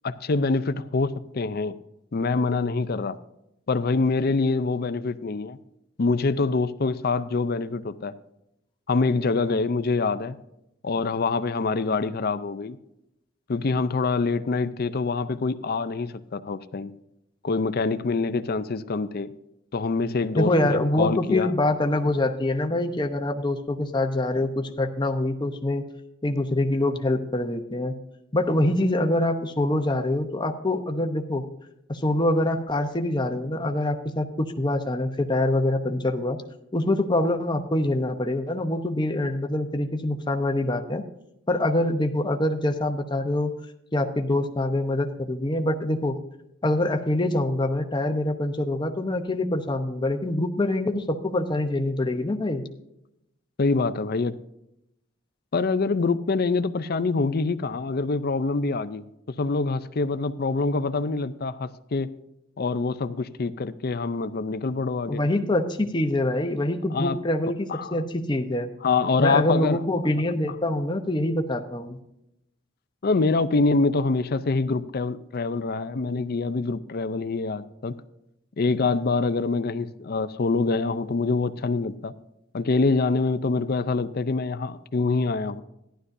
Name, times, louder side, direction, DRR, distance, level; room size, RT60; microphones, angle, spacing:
voice 1, 0.0-1.8 2.1-3.2 3.7-5.6 6.0-8.1 8.9-10.4 10.8-12.8 13.5-16.9 17.4-19.3 19.7-21.5 53.6-54.4 55.5-62.1 62.6-65.2 66.9-67.2 67.7-68.0 68.8-69.8 73.0-78.0 78.6-82.1 82.5-85.6, left 3 dB, 50° left, 13 dB, 0.5 m, -25 dB
voice 2, 20.3-25.9 26.2-27.9 28.3-31.4 31.9-36.4 36.7-41.0 41.5-43.5 43.9-46.2 46.6-52.6 65.1-68.7 69.2-72.0, left 1 dB, 20° left, 5 dB, 0.8 m, -25 dB
14.5 x 11.5 x 2.6 m, 0.84 s
head